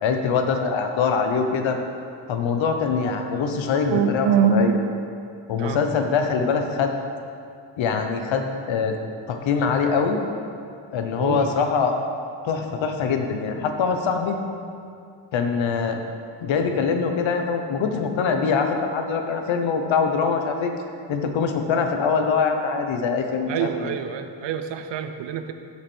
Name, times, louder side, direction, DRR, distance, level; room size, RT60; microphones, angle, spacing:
voice 1, 0.0-1.8 2.3-4.8 5.5-6.9 7.8-9.0 9.3-10.2 10.9-12.0 12.4-14.4 15.3-16.0 16.4-20.7 21.1-23.7, left 5 dB, 75° left, 5 dB, 1.0 m, -23 dB
voice 2, 3.9-4.8 5.6-5.8 11.2-11.5 13.6-13.7 23.5-25.5, right 7 dB, 65° right, 8 dB, 0.7 m, -24 dB
7.4 x 6.3 x 6.2 m, 2.4 s
cardioid pair, 120°, 46 cm